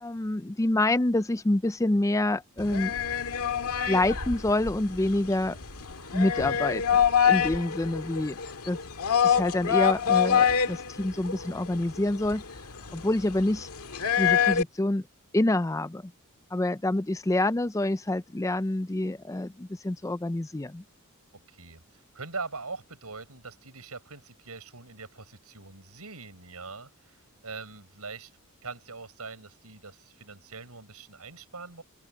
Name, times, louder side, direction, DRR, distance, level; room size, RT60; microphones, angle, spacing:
voice 1, 0.0-2.9 3.9-5.6 6.1-8.4 8.7-8.8 9.2-12.4 12.9-13.7 14.2-15.1 15.3-16.1 16.5-20.8, left 1 dB, 15° left, 0.4 m, -27 dB
sound 1, 2.6-14.6, left 8 dB, 90° left, 1.9 m, -26 dB
sound 2, 2.6-7.6, equal, 60° right, 7.1 m, -44 dB
voice 2, 21.5-28.3 28.6-31.8, right 4 dB, 85° right, 6.5 m, -42 dB
head